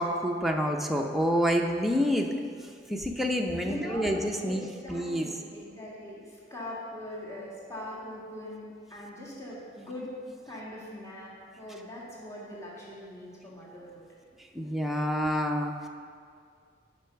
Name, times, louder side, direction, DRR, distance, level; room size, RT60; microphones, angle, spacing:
voice 1, 0.0-2.3 2.9-4.6 4.9-5.3 14.5-15.7, equal, ahead, 1 dB, 0.5 m, -27 dB
voice 2, 3.6-4.1 4.4-10.1 10.4-14.1, left 1 dB, 15° left, -7 dB, 1.8 m, -41 dB
7.9 x 5.2 x 5.7 m, 2.2 s
head